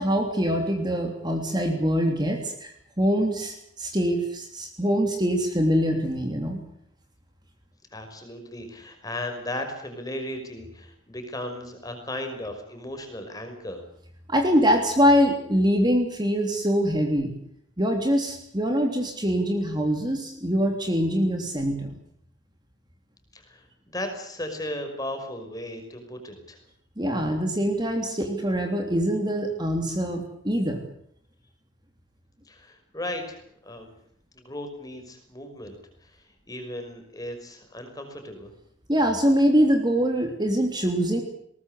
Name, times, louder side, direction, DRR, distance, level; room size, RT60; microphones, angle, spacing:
voice 1, 0.0-6.6 14.3-17.3 17.8-21.9 27.0-30.8 38.9-41.2, equal, 20° right, 3 dB, 3.3 m, -24 dB
voice 2, 7.9-13.8 23.3-23.7 23.9-26.6 32.5-33.9 34.3-38.5, left 1 dB, 20° left, 5 dB, 5.6 m, -36 dB
22.5 x 19.5 x 8.2 m, 0.68 s
head